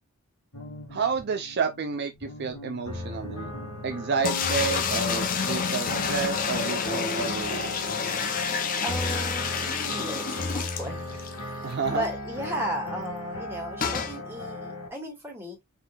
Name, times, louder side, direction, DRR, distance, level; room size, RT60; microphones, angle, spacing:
sound 1, 0.5-8.3, left 1 dB, 60° left, 1.7 m, -41 dB
voice 1, 0.9-3.5 3.8-8.0 11.6-12.1, right 5 dB, 50° right, 0.4 m, -30 dB
sound 2, 2.9-14.9, left 1 dB, 80° left, 2.1 m, -36 dB
sound 3, 4.2-11.4 11.7-11.8 12.0-12.1 13.8-14.2, left 6 dB, 40° left, 0.6 m, -29 dB
voice 2, 8.8-11.3 11.6-15.6, right 1 dB, 10° right, 1.9 m, -35 dB
4.0 x 3.9 x 2.4 m
head